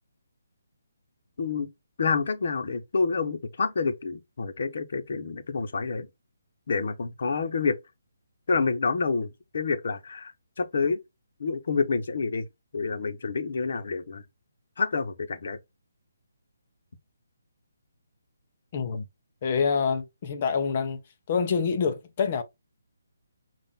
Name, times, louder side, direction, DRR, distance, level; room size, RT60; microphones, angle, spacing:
voice 1, 2.0-6.1 6.7-7.8 8.5-10.3 10.6-11.0 11.4-12.5 12.7-14.2 14.8-15.6, left 4 dB, 50° left, 0.9 m, -28 dB
voice 2, 18.7-19.0 19.4-21.0 21.3-22.4, left 6 dB, 25° left, 0.6 m, -26 dB
5.7 x 2.5 x 3.5 m
hypercardioid pair, 175°, 0 cm